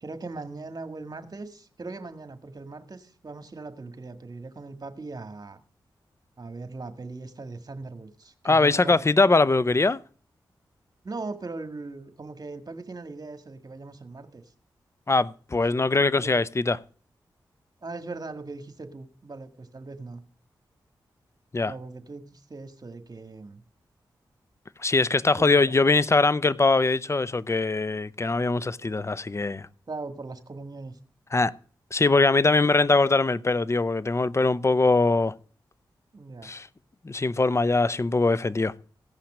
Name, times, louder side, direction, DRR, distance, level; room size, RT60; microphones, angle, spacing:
voice 1, 0.0-5.6 6.4-9.1 11.0-14.4 16.2-16.4 17.8-20.2 21.7-23.6 25.4-25.7 29.9-31.0 36.1-36.5, right 3 dB, 45° right, 1.8 m, -39 dB
voice 2, 8.4-10.0 15.1-16.8 21.5-21.7 24.8-29.7 31.3-31.5 31.9-35.3 36.4-36.7 37.0-38.7, left 3 dB, 30° left, 0.7 m, -22 dB
16.0 x 5.8 x 7.4 m
cardioid pair, 45°, 9 cm